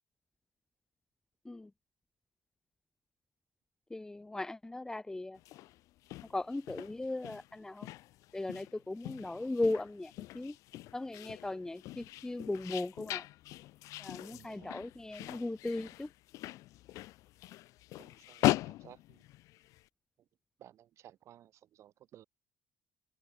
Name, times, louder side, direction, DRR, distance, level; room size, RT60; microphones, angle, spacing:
voice 1, 3.9-5.4 6.3-7.9 8.3-10.6 10.9-13.3 14.0-16.1, left 2 dB, 10° left, 1.3 m, -37 dB
sound 1, 5.4-19.8, left 17 dB, 75° left, 1.0 m, -40 dB
voice 2, 14.3-14.9 18.0-19.2 20.6-22.2, right 12 dB, 60° right, 7.5 m, -57 dB
cardioid pair, 115°, 6 cm